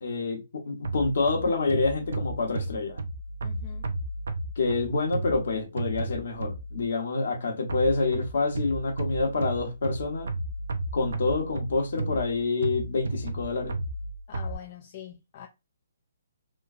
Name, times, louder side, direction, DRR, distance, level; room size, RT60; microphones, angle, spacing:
voice 1, 0.0-3.0 4.6-10.3 10.9-13.8, left 3 dB, 65° left, 0.9 m, -27 dB
sound 1, 0.8-6.9 7.7-14.5, right 2 dB, 75° right, 0.5 m, -34 dB
voice 2, 3.4-3.9 14.3-15.5, left 10 dB, 40° left, 0.3 m, -44 dB
3.0 x 2.3 x 2.4 m
figure-of-eight pair, 135°, 0 cm